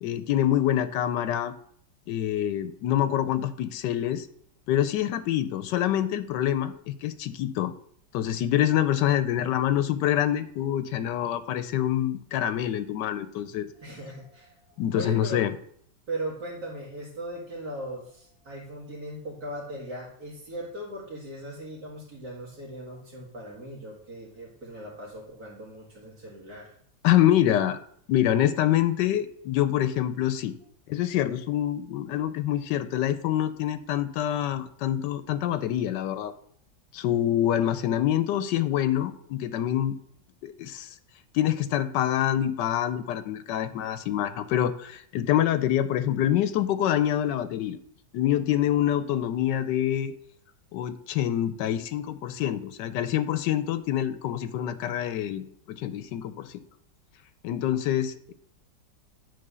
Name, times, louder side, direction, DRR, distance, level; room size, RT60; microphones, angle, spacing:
voice 1, 0.0-1.5 2.1-4.3 4.7-7.7 8.1-13.7 14.8-15.5 27.0-27.8 28.1-30.6 30.9-36.3 36.9-40.0 40.4-41.0 41.3-47.8 48.1-50.1 50.7-56.6 57.4-58.3, left 11 dB, 85° left, 13 dB, 1.3 m, -26 dB
voice 2, 13.8-15.4 16.1-26.7, right 1 dB, 60° right, -5 dB, 2.3 m, -38 dB
10.0 x 3.7 x 6.8 m, 0.63 s
omnidirectional pair, 1.9 m